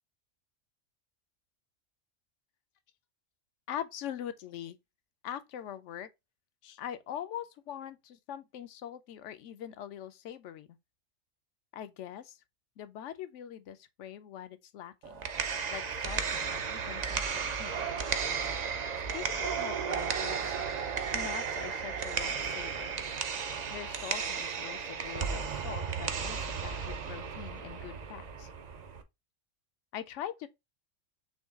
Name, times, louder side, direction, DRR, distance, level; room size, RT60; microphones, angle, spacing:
voice 1, 3.7-4.8 5.2-6.1 6.6-10.7 11.7-12.4 12.8-15.3 15.7-17.9 19.1-20.6 21.1-22.9 23.7-28.5 29.9-30.5, left 10 dB, 70° left, 0.9 m, -43 dB
sound 1, 15.0-29.0, right 6 dB, 50° right, 0.5 m, -34 dB
6.3 x 2.3 x 3.4 m
omnidirectional pair, 1.4 m